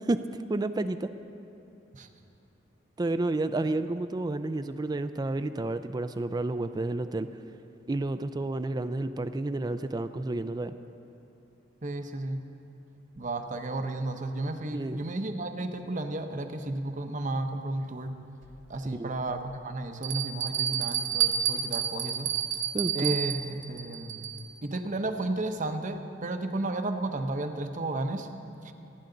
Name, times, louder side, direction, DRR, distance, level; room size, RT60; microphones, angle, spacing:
voice 1, 0.5-1.1 3.0-7.3 7.9-10.7 14.7-15.0 18.9-19.1 22.7-23.2, right 2 dB, 20° right, 11 dB, 0.4 m, -30 dB
voice 2, 11.8-12.4 13.1-18.1 18.7-22.3 22.9-24.3 24.6-28.3 28.6-28.7, right 2 dB, 45° right, 7 dB, 0.9 m, -33 dB
Bell, 18.4-18.5 19.2-19.3 20.0-24.6, right 9 dB, 80° right, 1.4 m, -30 dB
27.0 x 9.8 x 3.9 m, 2.8 s
head